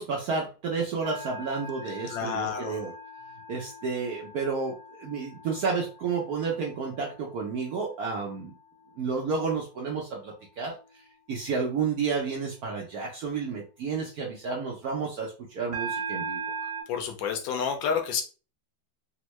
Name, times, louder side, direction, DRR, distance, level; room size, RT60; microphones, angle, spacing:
voice 1, 0.0-2.9 3.5-8.5 9.0-16.4, right 5 dB, 70° right, 0.9 m, -31 dB
sound 1, 1.0-9.3 9.8-10.1 15.7-16.8, right 4 dB, 40° right, 0.4 m, -40 dB
voice 2, 2.1-2.8 16.9-18.2, left 6 dB, 75° left, 1.2 m, -29 dB
3.5 x 2.1 x 3.0 m
omnidirectional pair, 2.2 m